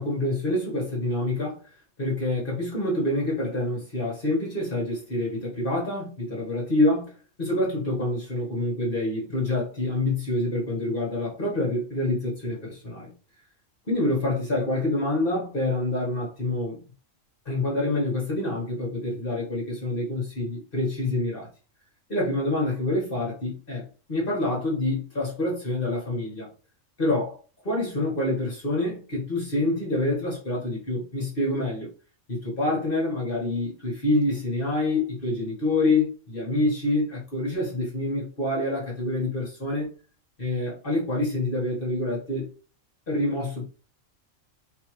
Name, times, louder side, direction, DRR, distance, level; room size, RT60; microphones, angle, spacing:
voice 1, 0.0-1.6 2.0-7.1 7.4-13.1 13.9-16.8 17.4-21.5 22.1-26.5 27.0-27.4 27.6-31.9 32.3-39.9 40.4-42.5 43.1-43.6, left 2 dB, 45° left, 1.6 m, -27 dB
3.9 x 3.3 x 3.1 m
omnidirectional pair, 1.4 m